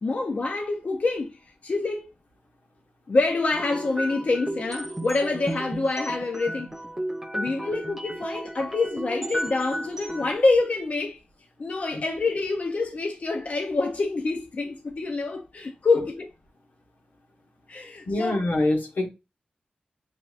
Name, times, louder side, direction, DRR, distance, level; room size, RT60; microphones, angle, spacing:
voice 1, 0.0-1.3 1.6-2.1 3.1-6.7 7.3-11.2 11.6-16.3 17.7-18.4, left 3 dB, 55° left, 0.6 m, -26 dB
sound 1, 3.5-10.3, right 1 dB, 10° right, 0.5 m, -34 dB
voice 2, 18.1-19.1, left 2 dB, 85° left, 1.2 m, -24 dB
7.6 x 2.8 x 2.4 m
wide cardioid pair, 115°, 3 cm